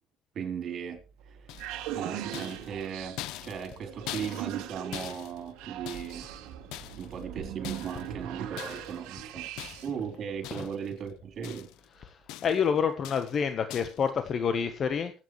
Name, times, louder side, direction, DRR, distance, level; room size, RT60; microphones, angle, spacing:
voice 1, 0.3-1.0 1.3-1.5 1.9-6.3 7.0-9.5 9.8-11.7, right 7 dB, 55° right, 3.6 m, -37 dB
sound 1, 1.0-10.0, right 10 dB, 90° right, 1.5 m, -40 dB
sound 2, 1.5-1.9 2.3-6.3 6.7-7.2 7.6-8.1 8.6-9.0 9.6-10.1 10.4-10.9 11.2-11.9 12.3-12.7 13.0-13.4 13.7-14.1, left 15 dB, 90° left, 0.7 m, -43 dB
voice 2, 12.0-15.1, left 7 dB, 50° left, 1.2 m, -28 dB
24.5 x 9.0 x 3.2 m
cardioid pair, 100°, 0 cm